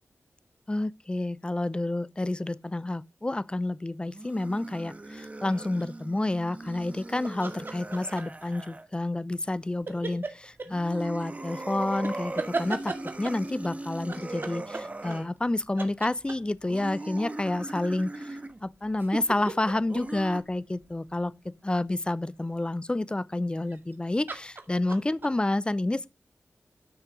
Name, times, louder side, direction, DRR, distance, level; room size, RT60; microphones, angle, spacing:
voice 1, 0.7-10.2 10.7-26.1, left 2 dB, 20° left, 0.7 m, -29 dB
sound 1, 4.0-8.9 10.7-15.3 16.7-18.6 19.9-20.4, right 2 dB, 30° right, 1.2 m, -39 dB
sound 2, 7.2-8.4 9.9-10.7 12.0-13.5 14.1-15.5 15.8-16.7 18.5-21.2 23.6-23.9 24.3-25.3, right 3 dB, 45° right, 1.9 m, -36 dB
13.0 x 6.5 x 5.0 m
wide cardioid pair, 75°, 5 cm